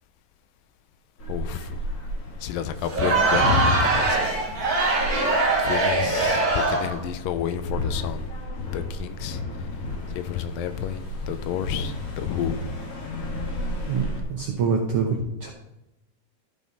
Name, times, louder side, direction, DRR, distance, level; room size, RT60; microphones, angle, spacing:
sound 1, 1.2-14.2, left 2 dB, 45° left, 2.4 m, -32 dB
voice 1, 1.3-1.8 2.4-4.2 5.6-8.2 8.7-9.4 10.1-12.7, left 9 dB, 80° left, 2.2 m, -30 dB
Crowd, 2.8-7.0, right 3 dB, 40° right, 1.3 m, -22 dB
voice 2, 13.9-15.5, right 5 dB, 75° right, 1.4 m, -25 dB
14.5 x 5.2 x 4.1 m
omnidirectional pair, 4.1 m